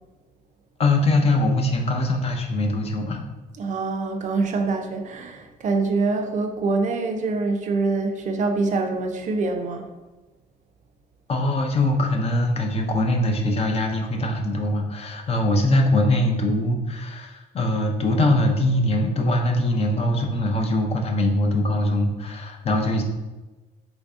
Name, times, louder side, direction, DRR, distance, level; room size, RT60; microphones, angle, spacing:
voice 1, 0.8-3.2 11.3-23.0, left 1 dB, 35° left, 3 dB, 0.5 m, -22 dB
voice 2, 3.6-9.8, right 3 dB, 45° right, 4 dB, 0.5 m, -25 dB
3.1 x 2.6 x 3.5 m, 1.2 s
cardioid pair, 110°, 17 cm